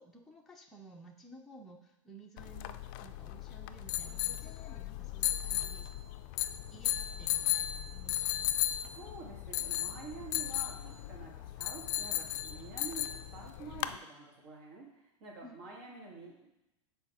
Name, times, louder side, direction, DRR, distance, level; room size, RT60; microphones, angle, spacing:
voice 1, 0.0-5.9 6.7-8.5 15.4-15.6, right 2 dB, ahead, -2 dB, 0.6 m, -54 dB
sound 1, 2.4-14.0, left 13 dB, 45° left, 0.4 m, -36 dB
voice 2, 8.9-16.5, right 4 dB, 50° right, -3 dB, 2.2 m, -48 dB
5.3 x 4.4 x 5.7 m, 0.89 s
supercardioid pair, 135°, 16 cm